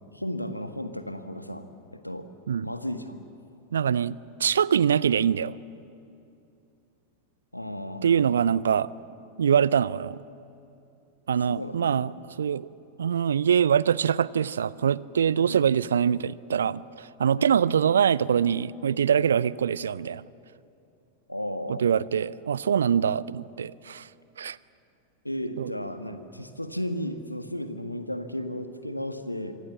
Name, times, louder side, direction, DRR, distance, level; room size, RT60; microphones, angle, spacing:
voice 1, 0.1-1.6 1.9-2.3 2.6-3.1 7.5-8.3 11.5-11.9 15.3-15.7 17.3-17.5 21.3-21.8 25.2-29.5, equal, 85° left, 9 dB, 1.5 m, -34 dB
voice 2, 3.7-5.6 8.0-8.9 9.4-10.2 11.3-12.1 12.4-12.7 13.0-20.2 21.7-24.1 24.4-24.6 25.6-25.7, right 8 dB, 65° right, 21 dB, 0.5 m, -24 dB
25.5 x 24.5 x 7.2 m, 2.7 s
figure-of-eight pair, 90°, 0 cm